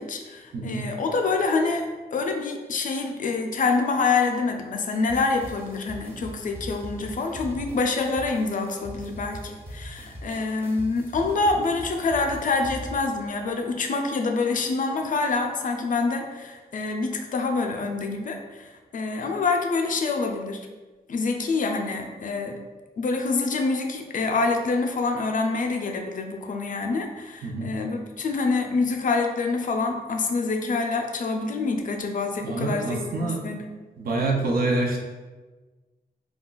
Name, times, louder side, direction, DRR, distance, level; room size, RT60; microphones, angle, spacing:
voice 1, 0.0-1.9 2.1-20.6 21.1-22.6 23.0-33.6, left 3 dB, 55° left, 3 dB, 0.4 m, -26 dB
voice 2, 0.5-0.9 27.4-27.7 32.4-33.6 34.0-35.0, right 2 dB, 65° right, 0 dB, 0.6 m, -26 dB
sound 1, 5.1-13.3, equal, 15° right, 0.6 m, -41 dB
2.3 x 2.3 x 3.7 m, 1.3 s
wide cardioid pair, 100°, 16 cm